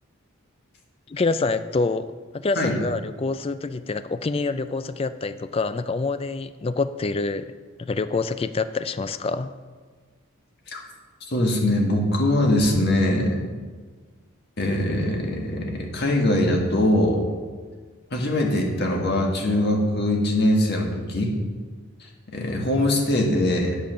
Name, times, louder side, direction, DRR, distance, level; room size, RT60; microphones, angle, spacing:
voice 1, 1.1-2.1 2.3-7.5 7.8-9.5, left 3 dB, 25° left, 12 dB, 0.3 m, -26 dB
voice 2, 11.3-13.4 14.6-17.2 18.1-21.3 22.3-23.8, left 1 dB, 50° left, 0 dB, 1.7 m, -22 dB
8.5 x 8.3 x 6.3 m, 1.5 s
head